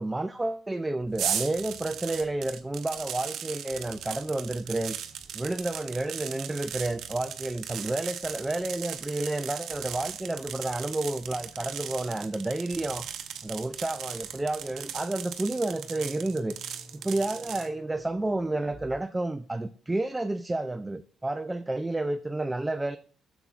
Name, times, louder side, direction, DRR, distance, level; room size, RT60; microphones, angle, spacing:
voice 1, 0.0-5.0 5.3-23.0, right 2 dB, 15° right, 0.4 m, -31 dB
sound 1, 1.0-19.0, right 3 dB, 40° right, 1.1 m, -54 dB
sound 2, 1.2-17.7, right 9 dB, 75° right, 0.7 m, -37 dB
9.9 x 7.0 x 2.4 m
cardioid pair, 90°, 0 cm